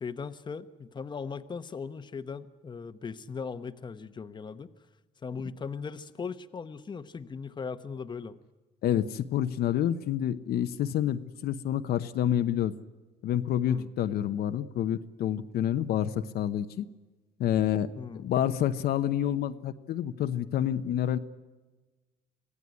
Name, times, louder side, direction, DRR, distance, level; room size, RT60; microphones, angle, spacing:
voice 1, 0.0-4.7 5.2-8.4 13.6-13.9 18.0-18.2, left 5 dB, 25° left, 10 dB, 1.0 m, -38 dB
voice 2, 8.8-12.7 13.2-16.9 17.4-17.9 18.2-21.2, left 10 dB, 65° left, 9 dB, 1.0 m, -28 dB
25.0 x 16.5 x 9.7 m, 1.2 s
cardioid pair, 110°, 17 cm